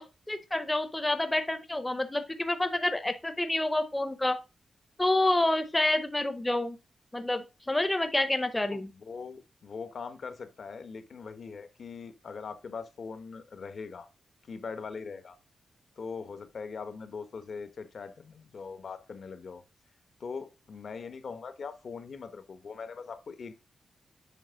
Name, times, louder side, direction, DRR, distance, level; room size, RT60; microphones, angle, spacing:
voice 1, 0.0-4.4 5.0-6.8 7.1-8.9, left 1 dB, 15° left, 0.6 m, -28 dB
voice 2, 8.7-14.1 14.5-15.4 16.0-19.6 20.2-23.5, left 5 dB, 60° left, 1.0 m, -41 dB
7.3 x 3.4 x 5.6 m
wide cardioid pair, 125°, 0 cm